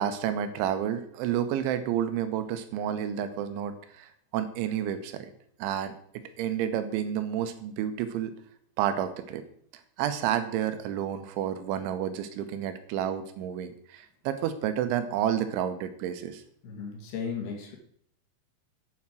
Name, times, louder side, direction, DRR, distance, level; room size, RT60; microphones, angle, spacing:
voice 1, 0.0-5.3 5.6-5.9 6.4-8.3 8.8-9.4 10.0-16.4, right 10 dB, 85° right, 10 dB, 3.3 m, -30 dB
voice 2, 16.6-17.8, left 6 dB, 65° left, 1 dB, 3.7 m, -35 dB
8.6 x 7.5 x 6.1 m, 0.64 s
omnidirectional pair, 5.3 m